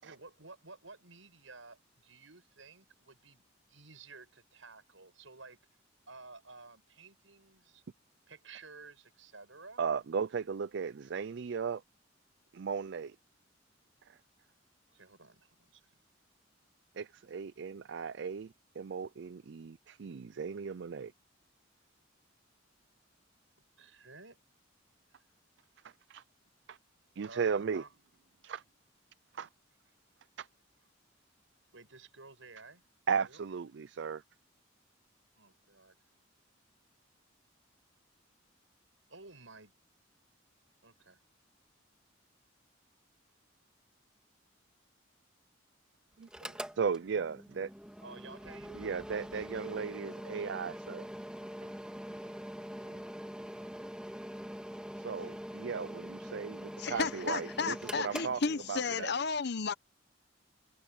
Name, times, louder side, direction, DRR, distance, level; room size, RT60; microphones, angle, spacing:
voice 1, 0.0-3.4 3.7-5.6 6.1-7.8 8.3-9.8 14.9-15.9 23.8-24.4 27.2-27.9 31.7-32.8 33.2-33.4 35.3-35.9 39.1-39.7 40.8-41.2 48.0-49.2 50.1-50.6 52.8-53.2 53.6-53.8, right 3 dB, 80° right, 8.0 m, -54 dB
voice 2, 9.8-11.8 12.5-13.2 14.1-14.2 17.0-21.1 25.8-26.2 26.7-26.8 27.2-27.8 28.4-28.6 29.3-29.5 30.4-30.5 33.1-34.2 46.2-47.7 48.7-51.1 55.0-59.1, right 6 dB, 60° right, 0.4 m, -36 dB
Mechanical fan, 46.2-59.1, equal, 5° right, 1.8 m, -44 dB
voice 3, 56.8-59.7, left 4 dB, 60° left, 0.9 m, -33 dB
head